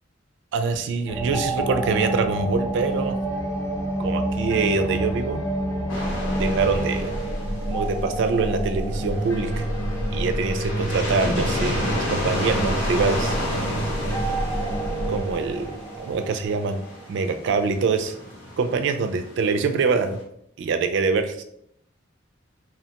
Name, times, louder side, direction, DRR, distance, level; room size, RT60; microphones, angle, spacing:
voice 1, 0.5-3.2 4.0-5.5 6.4-7.1 7.7-9.6 10.1-13.4 15.1-16.8 17.1-18.1 18.6-20.2 20.6-21.4, right 4 dB, 65° right, 7 dB, 0.3 m, -24 dB
sound 1, 1.1-17.3, right 1 dB, 15° left, 0.5 m, -28 dB
sound 2, 5.9-8.2 8.9-20.2, left 1 dB, 85° left, 0.9 m, -33 dB
Guitar, 9.9-16.5, left 1 dB, 50° left, 0.7 m, -43 dB
2.9 x 2.1 x 2.8 m, 0.71 s
head